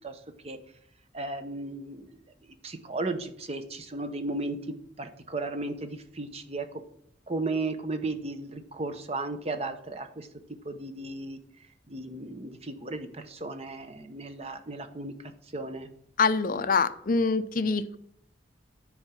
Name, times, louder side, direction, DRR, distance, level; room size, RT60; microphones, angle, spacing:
voice 1, 1.1-2.1 2.6-6.7 7.3-10.3 10.6-11.4 11.9-15.1 15.5-15.9, right 2 dB, 35° right, 8 dB, 0.8 m, -35 dB
voice 2, 16.2-18.0, left 4 dB, 45° left, 12 dB, 0.5 m, -25 dB
9.7 x 4.8 x 5.7 m, 0.69 s
head